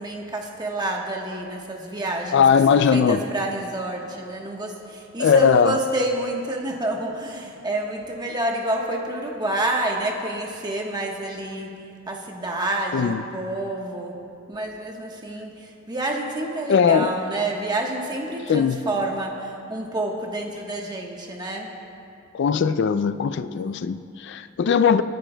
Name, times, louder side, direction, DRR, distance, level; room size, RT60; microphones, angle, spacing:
voice 1, 0.0-2.4 2.7-11.7 12.1-14.1 14.5-21.7, right 1 dB, 20° right, 0 dB, 1.2 m, -28 dB
voice 2, 2.3-3.2 5.2-5.8 12.9-13.2 16.7-17.1 18.5-18.8 22.3-25.0, left 6 dB, 60° left, 12 dB, 0.3 m, -19 dB
27.5 x 10.0 x 2.2 m, 2.6 s
head